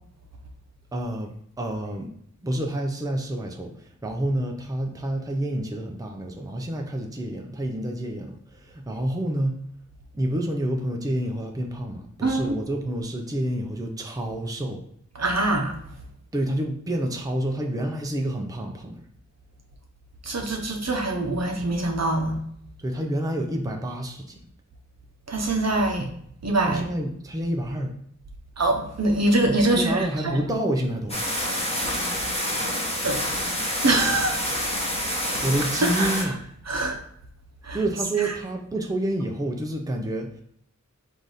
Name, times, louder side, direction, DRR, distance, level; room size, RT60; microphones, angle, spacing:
voice 1, 0.9-2.1 2.4-9.6 10.1-14.8 16.3-19.0 22.8-24.4 26.7-28.0 29.7-31.2 35.4-36.4 37.7-40.4, right 1 dB, 10° right, 2 dB, 0.6 m, -28 dB
voice 2, 12.2-12.6 15.1-15.8 20.2-22.4 25.3-26.1 26.4-26.8 28.6-30.4 31.8-32.1 33.0-33.2 33.8-34.4 35.3-35.4 35.8-36.3 36.7-37.0 37.6-37.8 38.2-38.3, right 2 dB, 55° right, 2 dB, 0.8 m, -24 dB
sound 1, 31.1-36.2, equal, 20° left, 1.1 m, -27 dB
3.9 x 2.7 x 4.8 m, 0.67 s
wide cardioid pair, 60°, 31 cm